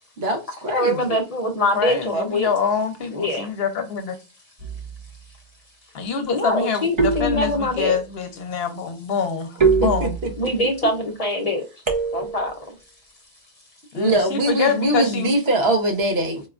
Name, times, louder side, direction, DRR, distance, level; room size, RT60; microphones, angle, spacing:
voice 1, 0.2-0.9 9.8-10.1 13.9-16.4, right 1 dB, 75° right, 1.2 m, -22 dB
voice 2, 0.7-2.5 3.1-3.5 6.3-8.0 10.4-11.7 12.1-12.7, left 1 dB, 45° left, 0.6 m, -23 dB
voice 3, 1.7-4.1 5.9-10.1 13.9-15.4, left 6 dB, 75° left, 0.9 m, -25 dB
sound 1, 4.6-5.1 7.0-7.9 9.6-10.5 11.9-12.6, right 4 dB, 35° right, 0.5 m, -23 dB
4.4 x 2.2 x 2.4 m
omnidirectional pair, 1.1 m